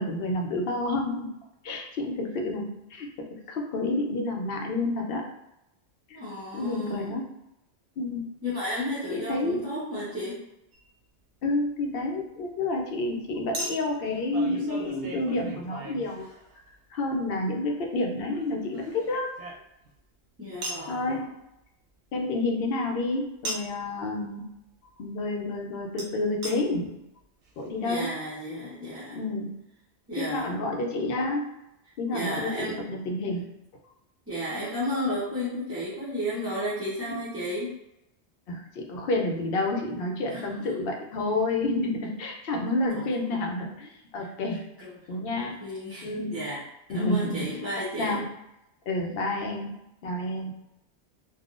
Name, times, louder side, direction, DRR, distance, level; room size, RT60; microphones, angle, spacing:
voice 1, 0.0-1.3 1.6-5.3 6.1-6.2 6.5-7.3 8.0-8.3 9.1-9.7 11.4-16.3 16.9-19.4 20.9-21.3 22.1-24.5 25.0-27.0 27.6-28.2 29.1-29.5 30.2-31.5 32.0-33.4 37.1-37.2 38.5-44.6 45.1-45.6 46.0-46.4 46.9-47.5 48.0-48.3 48.9-49.7 50.0-50.5, left 2 dB, 65° left, 1 dB, 0.7 m, -29 dB
voice 2, 6.1-7.2 8.4-10.4 20.4-21.2 27.8-29.2 30.1-30.5 32.1-32.8 34.3-37.7 40.3-40.4 42.9-43.4 44.8-44.9 45.2-46.6 46.9-48.2, equal, 15° right, -11 dB, 0.6 m, -33 dB
Chink clink, 10.7-10.9 13.5-16.7 18.3-20.0 20.6-20.9 23.4-23.8 26.0-26.1 26.4-26.5 27.2-27.3 27.5-27.6, right 2 dB, 80° right, 0.9 m, -38 dB
3.5 x 2.3 x 2.4 m, 0.87 s
omnidirectional pair, 1.1 m